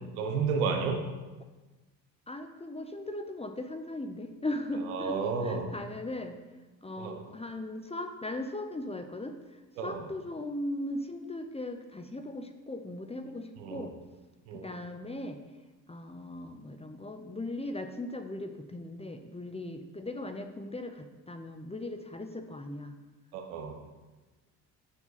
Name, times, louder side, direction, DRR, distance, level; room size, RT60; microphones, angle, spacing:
voice 1, 0.1-1.0 4.9-5.7 7.0-7.2 9.8-10.0 13.6-13.8 14.5-14.7 23.3-23.8, right 5 dB, 75° right, 4 dB, 1.2 m, -31 dB
voice 2, 2.3-6.4 6.8-14.0 14.5-15.4 15.9-23.0, left 1 dB, 15° left, 6 dB, 0.8 m, -38 dB
7.1 x 6.9 x 4.1 m, 1.2 s
figure-of-eight pair, 45°, 46 cm